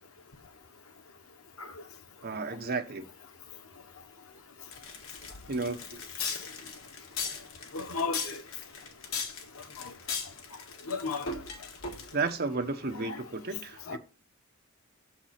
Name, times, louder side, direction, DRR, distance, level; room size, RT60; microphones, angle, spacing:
voice 1, 2.2-3.1 5.5-6.0 12.1-14.0, right 3 dB, 50° right, 1.0 m, -33 dB
sound 1, 4.7-12.4, left 5 dB, 70° left, 1.9 m, -38 dB
voice 2, 7.7-8.4 9.8-9.9 10.8-11.3 12.9-13.2 13.9-14.0, left 4 dB, 90° left, 1.1 m, -35 dB
7.4 x 4.7 x 5.7 m
head